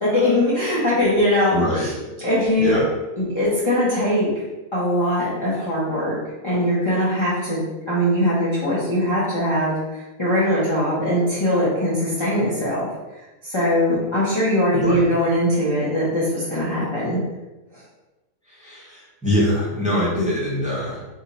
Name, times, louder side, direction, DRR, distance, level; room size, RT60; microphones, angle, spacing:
voice 1, 0.0-1.9 2.2-2.8 3.2-4.3 4.7-6.2 6.4-12.9 13.4-17.2 17.7-17.8, left 1 dB, 25° left, -10 dB, 1.0 m, -21 dB
voice 2, 1.5-1.9 2.6-2.8 14.7-15.1 18.4-21.1, left 1 dB, 5° right, -8 dB, 1.3 m, -23 dB
3.8 x 2.7 x 4.2 m, 1.1 s
omnidirectional pair, 1.5 m